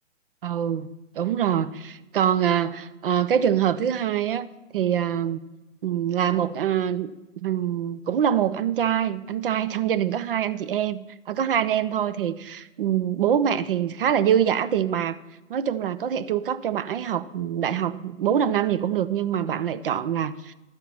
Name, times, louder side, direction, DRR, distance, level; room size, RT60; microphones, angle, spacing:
voice 1, 0.4-0.9 1.2-4.5 4.7-5.4 5.8-7.1 7.4-11.0 11.3-15.2 15.5-20.5, right 9 dB, 45° right, 14 dB, 0.5 m, -24 dB
12.0 x 4.5 x 6.9 m, 1.1 s
hypercardioid pair, 135°, 39 cm